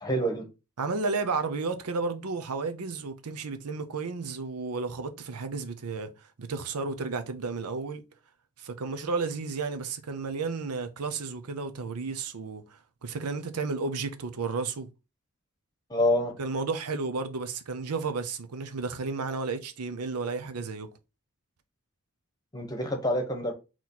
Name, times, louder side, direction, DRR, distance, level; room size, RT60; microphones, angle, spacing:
voice 1, 0.0-0.5 15.9-16.3 22.5-23.5, equal, 15° left, 0.9 m, -27 dB
voice 2, 0.8-6.1 6.4-8.0 8.6-14.9 16.4-20.9, right 4 dB, 90° right, 0.7 m, -32 dB
4.2 x 3.0 x 4.0 m
head